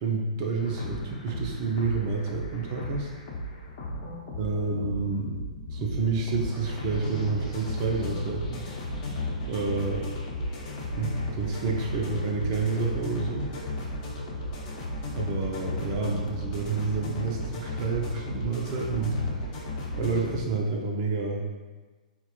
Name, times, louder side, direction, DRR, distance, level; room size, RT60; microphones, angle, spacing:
voice 1, 0.0-3.1 4.4-5.3 5.7-8.6 9.5-10.1 10.9-13.5 15.1-19.4 20.0-21.5, right 4 dB, 40° right, 0 dB, 0.5 m, -29 dB
sound 1, 0.6-20.4, left 1 dB, 45° left, 0.8 m, -35 dB
3.9 x 2.2 x 2.9 m, 1.3 s
figure-of-eight pair, 115°, 4 cm